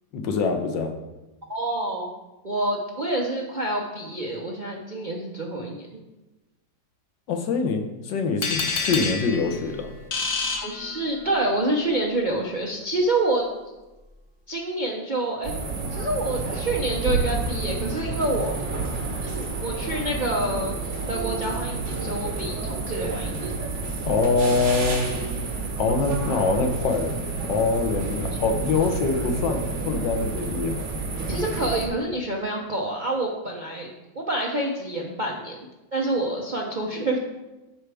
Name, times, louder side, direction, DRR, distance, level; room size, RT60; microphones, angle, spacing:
voice 1, 0.1-0.9 7.3-9.9 24.1-25.1 25.8-27.1 27.4-30.9, left 4 dB, 80° left, 5 dB, 1.5 m, -24 dB
voice 2, 1.5-2.1 2.4-5.9 10.6-13.5 14.5-15.5 15.9-18.6 19.2-23.5 31.3-35.6 35.9-37.2, right 1 dB, 50° right, -2 dB, 0.5 m, -27 dB
sound 1, 8.4-11.5, left 4 dB, 50° left, 0.6 m, -29 dB
sound 2, 15.4-31.9, right 3 dB, 85° right, 2.1 m, -30 dB
12.0 x 4.7 x 3.4 m, 1.1 s
omnidirectional pair, 2.0 m